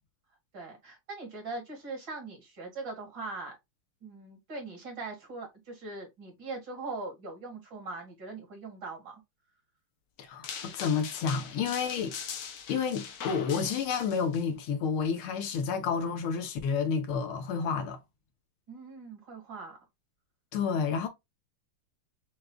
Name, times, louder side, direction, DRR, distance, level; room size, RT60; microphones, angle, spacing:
voice 1, 0.5-3.6 4.0-9.2 18.7-19.8, right 3 dB, 60° right, 2.7 m, -41 dB
voice 2, 10.2-12.2 12.7-18.0 20.5-21.1, left 6 dB, 85° left, 1.8 m, -30 dB
sound 1, 10.4-14.4, left 7 dB, 65° left, 1.2 m, -41 dB
6.4 x 2.3 x 2.3 m
omnidirectional pair, 2.3 m